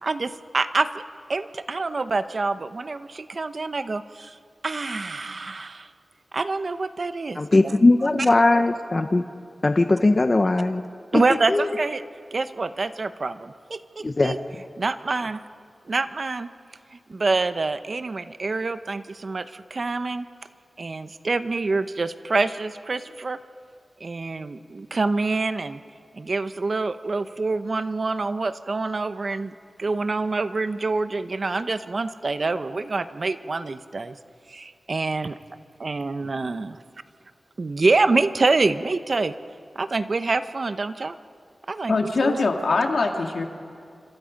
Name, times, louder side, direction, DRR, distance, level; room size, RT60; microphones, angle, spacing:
voice 1, 0.0-1.0 1.3-4.4 4.6-5.9 6.3-7.7 8.0-8.3 11.1-12.0 12.3-14.4 14.8-15.4 15.9-16.5 16.9-20.3 20.8-23.4 24.0-25.8 26.1-34.1 34.5-35.3 35.8-36.8 37.6-39.3 39.7-41.2 41.7-41.9 42.2-42.4, right 3 dB, 50° right, 11 dB, 0.8 m, -26 dB
voice 2, 7.4-9.2 9.6-10.8 11.1-11.2 11.5-11.7 14.0-14.3, left 2 dB, 35° left, 7 dB, 0.8 m, -19 dB
voice 3, 41.9-43.4, left 3 dB, 70° left, 3 dB, 2.3 m, -23 dB
27.5 x 25.5 x 5.3 m, 2.3 s
wide cardioid pair, 105°, 0 cm